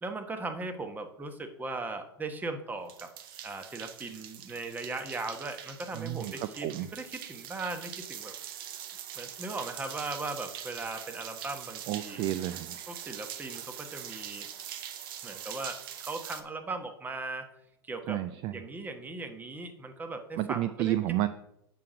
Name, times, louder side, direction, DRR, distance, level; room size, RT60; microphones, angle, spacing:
voice 1, 0.0-3.1 3.4-8.3 9.2-12.2 12.9-14.5 15.2-17.5 17.8-18.2 18.5-21.0, right 3 dB, 10° right, 6 dB, 1.1 m, -38 dB
sound 1, 2.9-16.4, right 10 dB, 55° right, 0.9 m, -43 dB
voice 2, 5.9-6.9 11.9-12.8 18.1-18.6 20.4-21.3, right 14 dB, 35° right, 12 dB, 0.4 m, -31 dB
7.4 x 6.0 x 5.0 m, 0.78 s
hypercardioid pair, 105°, 14 cm